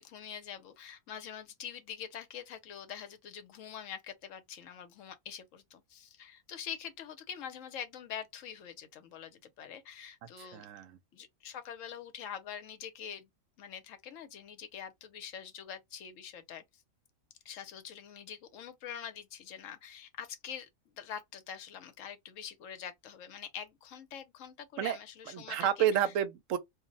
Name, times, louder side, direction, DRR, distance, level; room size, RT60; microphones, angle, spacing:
voice 1, 0.0-10.7 11.1-13.3 13.6-16.8 17.4-20.7 20.9-26.1, left 8 dB, 75° left, 1.0 m, -45 dB
voice 2, 10.4-11.0 24.8-25.0 25.3-26.6, right 9 dB, 75° right, 0.9 m, -30 dB
2.5 x 2.0 x 3.8 m
omnidirectional pair, 1.4 m